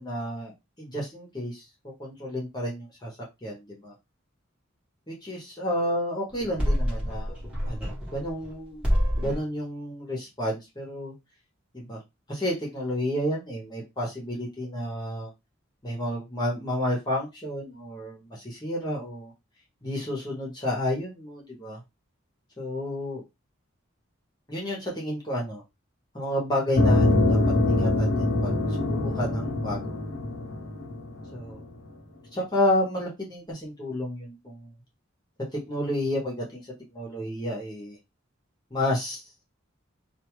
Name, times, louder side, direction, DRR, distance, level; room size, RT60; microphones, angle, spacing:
voice 1, 0.0-3.1 3.4-3.9 5.1-7.4 7.7-8.9 9.1-11.1 11.7-12.0 12.3-15.3 15.8-19.3 19.8-21.8 22.6-23.2 24.5-25.6 26.1-27.4 27.7-29.9 31.3-31.6 32.3-34.7 35.5-36.6 36.9-38.0 38.7-39.2, left 1 dB, 20° left, -2 dB, 1.0 m, -31 dB
sound 1, 6.3-8.5 8.8-9.5, equal, 5° right, 1.1 m, -27 dB
sound 2, 26.8-31.6, left 2 dB, 65° left, 0.8 m, -24 dB
2.6 x 2.4 x 3.0 m, 0.21 s
head